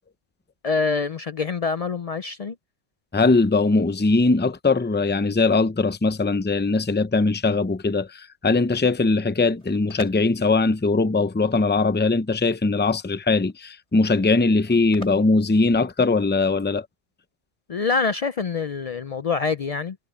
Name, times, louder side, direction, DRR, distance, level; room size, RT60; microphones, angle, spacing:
voice 1, 0.6-2.6 17.7-20.0, left 4 dB, 70° left, 0.3 m, -25 dB
voice 2, 3.1-16.9, left 3 dB, 10° left, 0.5 m, -21 dB
sound 1, 9.3-16.4, left 2 dB, 30° left, 4.9 m, -46 dB
omnidirectional pair, 1.3 m